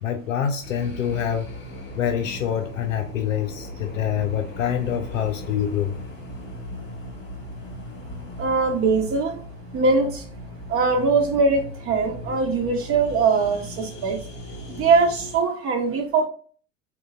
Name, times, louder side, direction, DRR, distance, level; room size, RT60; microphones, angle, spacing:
voice 1, 0.0-1.5 2.0-6.0, left 9 dB, 80° left, 0.5 m, -26 dB
sound 1, 0.6-15.4, equal, 30° left, 1.0 m, -38 dB
voice 2, 8.4-9.4 9.7-10.2 10.7-14.2 14.7-16.2, right 4 dB, 35° right, 1.1 m, -21 dB
3.7 x 2.3 x 4.1 m
figure-of-eight pair, 75°, 38 cm